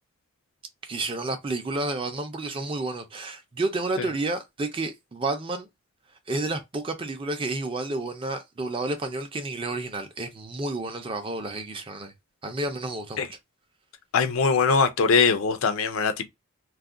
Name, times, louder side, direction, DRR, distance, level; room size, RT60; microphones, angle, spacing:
voice 1, 0.8-5.7 6.3-12.1 12.4-13.4, right 2 dB, 25° right, 0.4 m, -30 dB
voice 2, 14.1-16.3, left 5 dB, 70° left, 0.4 m, -22 dB
2.4 x 2.1 x 3.6 m
head